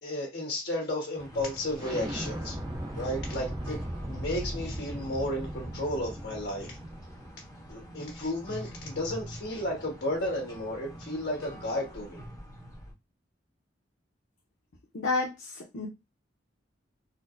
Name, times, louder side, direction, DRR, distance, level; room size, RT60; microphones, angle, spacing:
voice 1, 0.0-2.6 2.9-3.8 4.0-6.8 7.7-12.2, left 1 dB, 65° left, -1 dB, 1.7 m, -33 dB
sound 1, 1.2-12.9, equal, 20° left, 1.0 m, -46 dB
Explosion, 1.8-7.3, right 1 dB, 20° right, 0.5 m, -37 dB
voice 2, 14.9-15.9, left 3 dB, 80° left, 0 dB, 0.6 m, -30 dB
4.1 x 2.0 x 2.5 m, 0.24 s
head